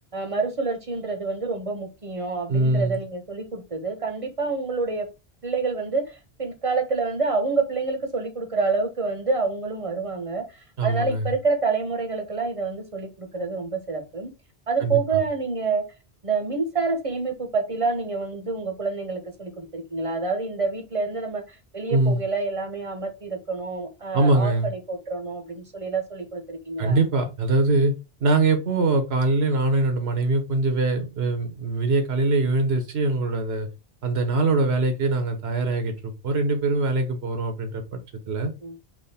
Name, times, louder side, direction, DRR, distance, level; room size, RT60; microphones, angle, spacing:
voice 1, 0.1-5.1 5.4-14.3 14.7-15.8 16.2-27.0 38.6-38.8, right 4 dB, 35° right, 0.8 m, -27 dB
voice 2, 2.5-3.0 10.8-11.3 14.8-15.0 21.9-22.2 24.1-24.7 26.8-27.9 28.2-33.7 34.0-38.0 38.3-38.5, right 2 dB, 80° right, 1.1 m, -23 dB
3.5 x 3.0 x 4.1 m
omnidirectional pair, 1.0 m